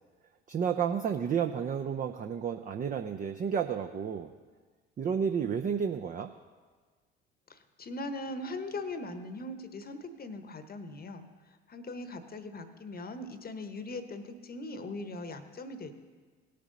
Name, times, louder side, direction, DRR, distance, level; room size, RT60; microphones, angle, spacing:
voice 1, 0.5-4.3 5.0-6.3, right 7 dB, 25° right, 6 dB, 0.5 m, -31 dB
voice 2, 7.5-11.2 11.7-15.9, left 2 dB, 30° left, 10 dB, 1.1 m, -40 dB
17.5 x 6.7 x 3.9 m, 1.5 s
figure-of-eight pair, 55°, 32 cm